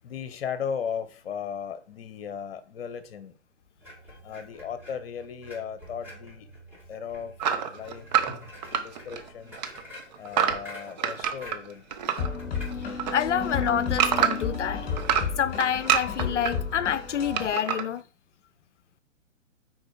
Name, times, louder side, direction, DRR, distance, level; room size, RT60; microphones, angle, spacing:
voice 1, 0.0-3.3 4.2-6.5 6.9-7.3 7.7-8.1 8.7-9.6 10.2-11.8, left 7 dB, 50° left, 1.0 m, -36 dB
sound 1, 3.8-15.7, left 1 dB, 5° right, 2.8 m, -48 dB
sound 2, 7.4-9.3 9.5-12.3 12.6-14.6 15.0-16.5 17.3-17.8, right 8 dB, 35° right, 0.8 m, -26 dB
sound 3, 12.2-17.5, left 6 dB, 25° left, 3.0 m, -32 dB
voice 2, 12.8-14.9 15.4-18.0, left 9 dB, 65° left, 0.6 m, -28 dB
6.4 x 4.7 x 4.7 m
figure-of-eight pair, 120°, 39 cm